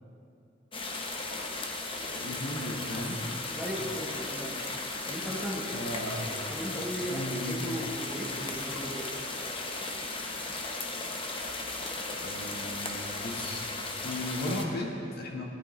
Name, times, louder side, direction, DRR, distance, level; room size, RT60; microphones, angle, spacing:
sound 1, 0.7-14.6, left 2 dB, 30° left, 1.0 m, -36 dB
voice 1, 2.0-3.2 5.7-6.3 7.1-7.6 12.2-13.7 14.0-15.4, left 1 dB, 55° left, 0 dB, 1.5 m, -36 dB
voice 2, 3.5-4.6 5.1-5.7 6.3-9.1, equal, 5° right, -2 dB, 1.2 m, -37 dB
18.0 x 11.0 x 3.2 m, 2.8 s
head